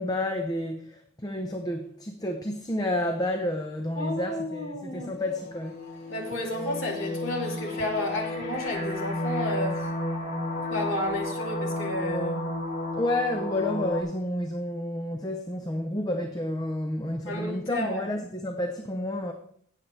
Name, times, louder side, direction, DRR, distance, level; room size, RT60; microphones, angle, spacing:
voice 1, 0.0-5.8 13.0-19.3, left 1 dB, 20° left, 0.7 m, -30 dB
voice 2, 4.0-5.1 6.1-9.9 10.7-12.4 17.2-18.1, left 1 dB, 75° left, 2.8 m, -31 dB
sound 1, 5.0-14.0, left 1 dB, 55° left, 2.8 m, -32 dB
16.5 x 7.5 x 3.2 m
head